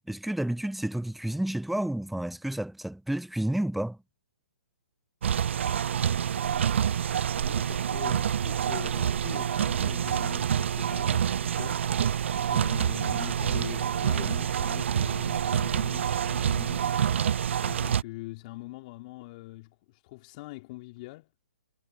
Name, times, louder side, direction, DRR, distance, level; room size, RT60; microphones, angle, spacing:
voice 1, 0.0-4.0, right 1 dB, ahead, 0.5 m, -30 dB
sound 1, 5.2-18.0, right 9 dB, 55° right, 0.4 m, -27 dB
voice 2, 7.4-11.9 12.5-16.9 17.6-21.3, left 21 dB, 35° left, 3.6 m, -43 dB
figure-of-eight pair, 140°, 8 cm